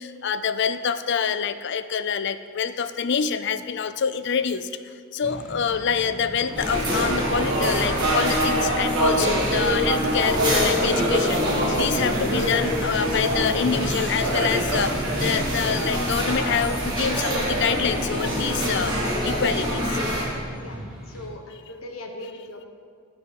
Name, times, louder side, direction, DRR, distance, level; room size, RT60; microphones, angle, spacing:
voice 1, 0.0-18.9 19.2-20.0, left 6 dB, 55° left, 12 dB, 0.5 m, -26 dB
sound 1, 5.2-21.3, equal, 5° right, 1.9 m, -38 dB
sound 2, 6.4-20.1, right 1 dB, 85° right, 1.8 m, -28 dB
sound 3, 6.6-20.3, equal, 20° right, 2.7 m, -26 dB
voice 2, 21.1-22.7, left 1 dB, 80° left, 4 dB, 1.2 m, -39 dB
15.0 x 6.2 x 5.3 m, 2.1 s
head